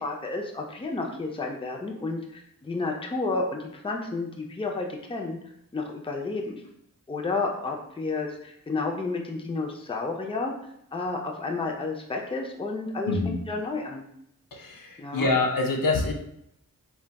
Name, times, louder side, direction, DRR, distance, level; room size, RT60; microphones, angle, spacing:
voice 1, 0.0-5.4 5.7-6.6 7.1-10.6 10.9-14.0 15.0-15.3, left 3 dB, 15° left, 1 dB, 0.4 m, -31 dB
voice 2, 13.0-13.4 14.5-16.1, left 3 dB, 70° left, 2 dB, 0.5 m, -25 dB
3.8 x 2.2 x 2.2 m, 0.76 s
wide cardioid pair, 40°, 35 cm